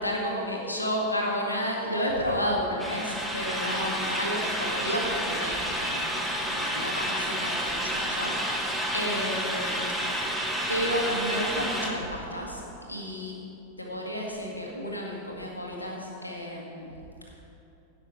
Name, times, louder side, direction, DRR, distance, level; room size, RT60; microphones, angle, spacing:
voice 1, 0.0-8.7 8.9-10.3 10.7-12.6 12.9-13.4 13.8-16.9, equal, 85° left, -1 dB, 1.9 m, -31 dB
sound 1, 2.8-11.9, equal, ahead, 1.3 m, -30 dB
16.5 x 6.3 x 4.4 m, 2.8 s
figure-of-eight pair, 90°, 0 cm